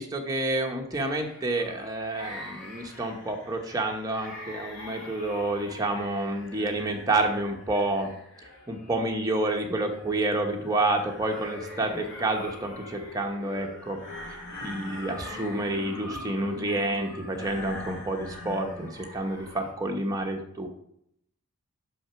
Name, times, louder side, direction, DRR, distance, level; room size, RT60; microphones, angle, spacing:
voice 1, 0.0-8.1 8.7-14.0 14.6-20.7, right 2 dB, 15° right, 2 dB, 0.9 m, -29 dB
sound 1, 0.9-19.7, left 1 dB, 65° left, 2.3 m, -43 dB
6.1 x 6.0 x 5.6 m, 0.75 s
head